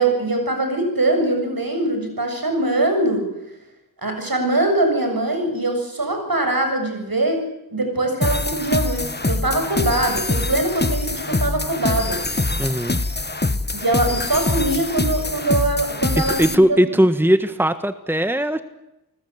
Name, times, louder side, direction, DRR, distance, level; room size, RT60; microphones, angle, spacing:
voice 1, 0.0-3.3 4.0-7.4 7.7-12.2 13.7-16.8, right 2 dB, 65° right, 5 dB, 7.2 m, -22 dB
sound 1, 8.2-16.6, left 2 dB, 25° left, 1.3 m, -24 dB
voice 2, 12.6-13.0 16.4-18.6, equal, 5° right, 10 dB, 1.6 m, -18 dB
28.5 x 20.5 x 8.1 m, 0.90 s
wide cardioid pair, 40°, 37 cm